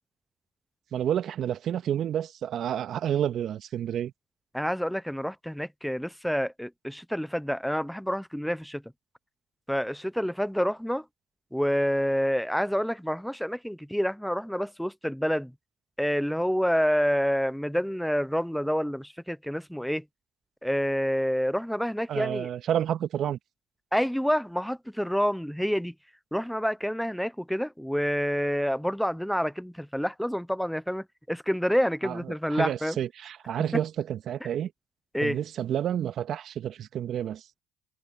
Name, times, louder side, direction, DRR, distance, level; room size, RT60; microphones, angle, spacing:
voice 1, 0.9-4.1 22.1-23.4 32.0-34.7 35.2-37.5, right 10 dB, 55° right, 1.8 m, -30 dB
voice 2, 4.5-8.8 9.7-11.0 11.5-15.5 16.0-20.0 20.6-22.5 23.9-25.9 26.3-33.0 35.1-35.4, equal, ahead, 0.9 m, -28 dB
hypercardioid pair, 70°, 0 cm